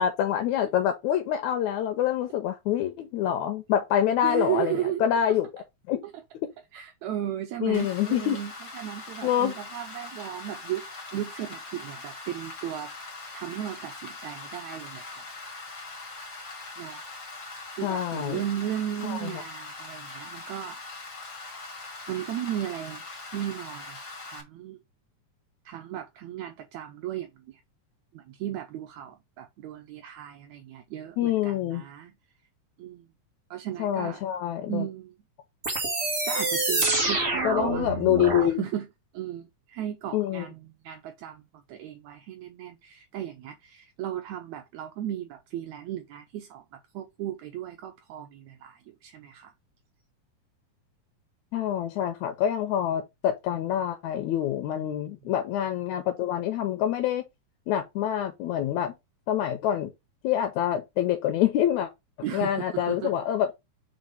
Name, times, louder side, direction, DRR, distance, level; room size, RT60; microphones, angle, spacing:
voice 1, 0.0-6.0 7.6-8.4 9.2-9.6 17.8-18.4 19.0-19.4 31.2-31.8 33.8-34.9 37.4-38.7 40.1-40.5 51.5-57.3 57.7-58.9 59.3-59.9 60.2-61.9 62.3-63.5, left 10 dB, 75° left, 2.1 m, -26 dB
voice 2, 4.2-5.1 6.7-10.8 11.1-12.9 13.3-15.5 16.8-17.0 17.8-21.2 22.1-24.8 25.7-27.6 28.1-32.1 32.8-33.1 33.5-34.2 34.7-35.1 36.0-38.0 38.4-38.9 39.1-41.4 41.7-49.5 54.7-54.9 62.2-63.1, right 11 dB, 75° right, 2.0 m, -35 dB
Rain, 7.7-24.4, left 3 dB, 35° left, 2.2 m, -42 dB
sound 1, 35.6-38.5, right 2 dB, 30° right, 1.3 m, -26 dB
4.9 x 3.8 x 5.3 m
omnidirectional pair, 3.5 m